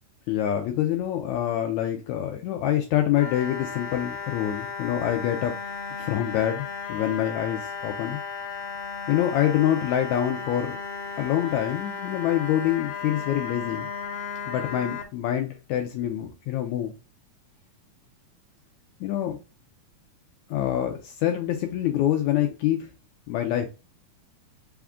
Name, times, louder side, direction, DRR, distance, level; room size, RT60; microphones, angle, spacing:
voice 1, 0.3-5.5 6.0-8.2 9.1-10.8 11.1-13.9 14.5-16.9 19.0-19.4 20.5-22.9 23.3-23.7, left 11 dB, 90° left, 5 dB, 1.6 m, -26 dB
sound 1, 3.2-15.0, left 5 dB, 70° left, 2.0 m, -35 dB
5.1 x 2.4 x 3.5 m, 0.30 s
omnidirectional pair, 3.9 m